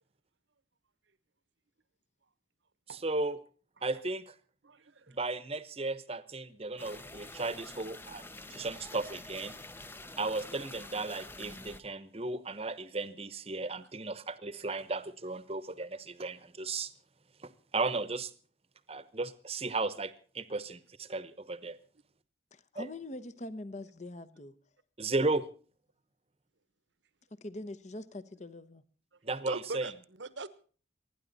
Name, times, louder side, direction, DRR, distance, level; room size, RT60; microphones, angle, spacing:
voice 1, 2.9-3.4 3.8-4.3 5.1-9.5 10.2-16.9 17.4-18.3 18.9-21.8 22.7-22.9 25.0-25.5 29.2-29.9, right 3 dB, 30° right, 15 dB, 1.0 m, -35 dB
voice 2, 4.6-5.2 8.5-8.7 10.0-10.2 25.0-25.1 29.5-29.9 30.2-30.5, right 3 dB, 75° right, 15 dB, 1.1 m, -42 dB
sound 1, 6.8-11.8, left 2 dB, 10° left, 0.6 m, -47 dB
voice 3, 22.5-24.5 27.4-28.8, left 1 dB, 40° left, 15 dB, 0.9 m, -43 dB
28.5 x 10.0 x 4.1 m, 0.40 s
head